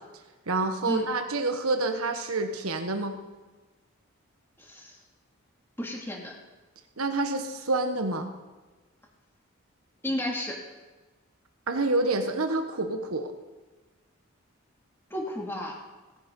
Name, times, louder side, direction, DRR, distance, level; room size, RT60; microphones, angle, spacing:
voice 1, 0.5-3.2 7.0-8.3 11.7-13.3, right 2 dB, 85° right, 5 dB, 1.4 m, -28 dB
voice 2, 4.6-5.0 5.8-6.3 10.0-10.6 15.1-15.8, left 1 dB, 10° left, -1 dB, 2.6 m, -32 dB
18.0 x 11.5 x 5.5 m, 1.2 s
head